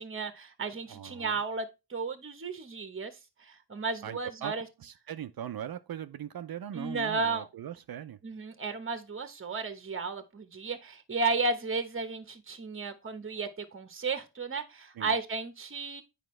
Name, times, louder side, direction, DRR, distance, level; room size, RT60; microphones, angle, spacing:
voice 1, 0.0-3.1 3.4-4.7 6.7-7.5 8.2-16.0, right 4 dB, 30° right, 1.1 m, -33 dB
voice 2, 0.9-1.4 4.0-4.5 4.8-8.2 15.0-15.1, right 10 dB, 65° right, 0.6 m, -40 dB
9.0 x 5.1 x 3.2 m
cardioid pair, 80°, 39 cm